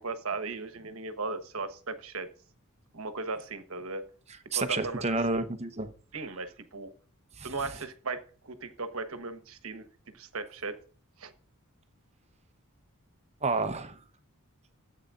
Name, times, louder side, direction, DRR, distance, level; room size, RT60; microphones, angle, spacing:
voice 1, 0.0-2.3 2.9-4.0 4.5-5.4 6.1-6.9 7.4-9.9 10.1-10.8 11.2-11.3, right 3 dB, 65° right, 10 dB, 1.2 m, -37 dB
voice 2, 4.5-5.9 7.4-7.5 13.4-14.0, right 3 dB, 30° right, 9 dB, 0.9 m, -30 dB
14.0 x 8.5 x 2.5 m, 0.40 s
head